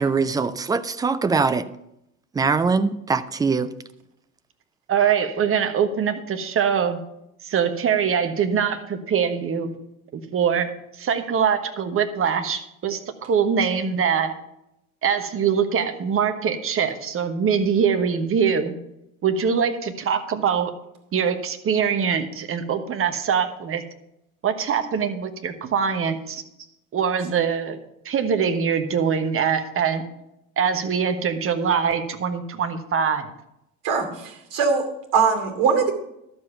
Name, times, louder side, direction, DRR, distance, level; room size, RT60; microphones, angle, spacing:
voice 1, 0.0-1.7 2.3-3.7, right 4 dB, 10° right, 0.4 m, -22 dB
voice 2, 4.9-7.0 7.4-9.8 10.1-10.7 11.0-14.4 15.0-18.7 19.2-20.7 21.1-23.8 24.4-26.4 26.9-27.8 28.0-30.0 30.6-33.3, right 7 dB, 30° right, 1.3 m, -23 dB
voice 3, 33.8-35.9, right 5 dB, 50° right, 2.7 m, -22 dB
12.0 x 7.2 x 5.6 m
figure-of-eight pair, 65°, 42 cm